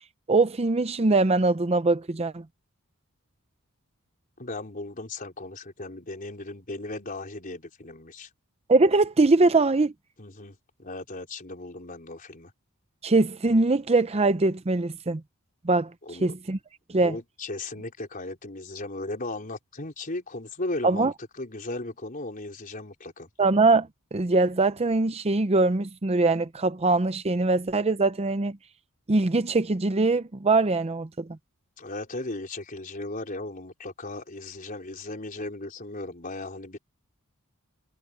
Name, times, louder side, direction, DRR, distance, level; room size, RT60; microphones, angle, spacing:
voice 1, 0.3-2.4 8.7-9.9 13.0-15.2 15.6-15.9 16.2-16.6 16.9-17.2 20.8-21.1 23.4-28.6 29.1-31.3, right 3 dB, 30° right, 0.6 m, -22 dB
voice 2, 4.4-8.3 10.2-12.5 16.0-16.3 17.0-23.3 31.8-36.8, left 2 dB, 40° left, 4.2 m, -36 dB
head